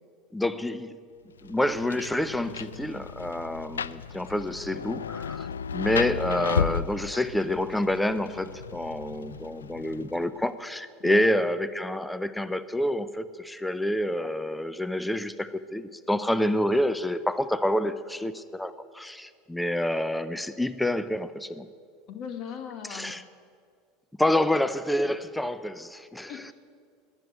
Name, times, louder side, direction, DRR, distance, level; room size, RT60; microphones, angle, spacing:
voice 1, 0.3-1.0 1.4-21.7 22.9-23.2 24.2-26.4, left 1 dB, 5° left, 14 dB, 0.6 m, -28 dB
Rain, 1.4-10.4, left 7 dB, 90° left, 0.3 m, -34 dB
voice 2, 11.0-11.3 22.1-23.2 25.0-25.2 26.3-26.5, left 8 dB, 55° left, 7 dB, 1.4 m, -39 dB
12.0 x 9.9 x 9.4 m, 2.1 s
hypercardioid pair, 80°, 0 cm